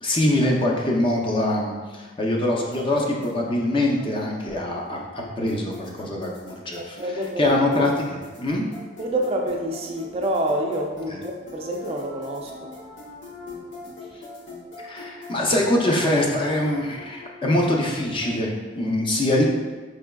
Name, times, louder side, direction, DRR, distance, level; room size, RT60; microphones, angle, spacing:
voice 1, 0.0-5.0 5.4-8.6 11.1-11.2 14.8-19.4, left 1 dB, 25° left, -1 dB, 0.5 m, -23 dB
sound 1, 2.7-18.3, left 3 dB, 80° left, 1.3 m, -41 dB
voice 2, 7.0-7.4 9.0-12.7, right 1 dB, 30° right, 1 dB, 0.4 m, -27 dB
4.8 x 3.3 x 2.3 m, 1.3 s
head